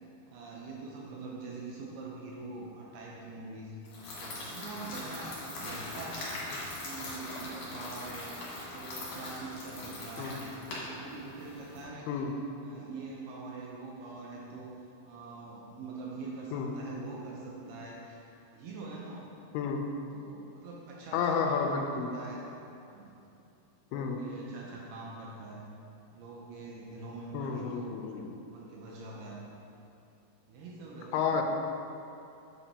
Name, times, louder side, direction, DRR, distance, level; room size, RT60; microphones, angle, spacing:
voice 1, 0.3-3.7 4.1-6.4 6.8-8.3 8.7-10.5 10.8-12.3 12.6-14.7 15.1-18.3 18.5-19.3 20.1-21.7 21.9-22.4 22.9-23.2 23.9-25.7 26.1-27.9 28.5-29.4 30.5-31.3, right 3 dB, 80° right, -3 dB, 2.7 m, -44 dB
sound 1, 3.9-11.8, left 1 dB, 60° left, 2.7 m, -41 dB
voice 2, 19.5-19.8 21.1-22.1 23.9-24.2 27.3-28.4 31.1-31.4, left 6 dB, 85° left, 3 dB, 2.6 m, -31 dB
8.4 x 7.3 x 2.8 m, 2.7 s
omnidirectional pair, 4.5 m